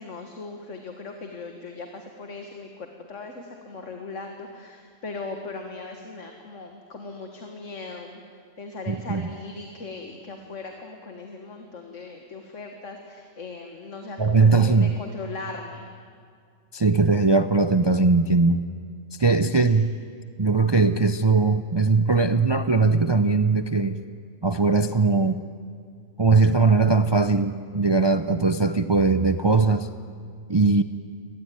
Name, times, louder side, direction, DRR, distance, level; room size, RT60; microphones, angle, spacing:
voice 1, 0.0-15.9 19.2-19.9, left 3 dB, 70° left, 4 dB, 2.0 m, -39 dB
voice 2, 8.9-9.2 14.2-14.9 16.7-18.6 19.2-19.9 20.4-24.0 24.4-25.4 26.2-29.9 30.5-30.8, right 3 dB, 35° right, 10 dB, 0.4 m, -20 dB
25.0 x 18.5 x 9.5 m, 2.1 s
omnidirectional pair, 1.3 m